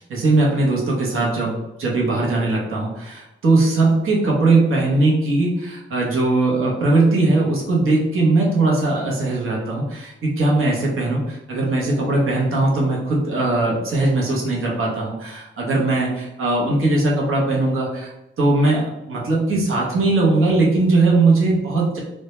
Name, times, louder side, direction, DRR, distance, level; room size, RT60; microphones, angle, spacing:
voice 1, 0.1-18.1 18.4-22.0, right 2 dB, 90° right, -3 dB, 0.7 m, -19 dB
2.1 x 2.0 x 2.9 m, 0.93 s
wide cardioid pair, 120°, 21 cm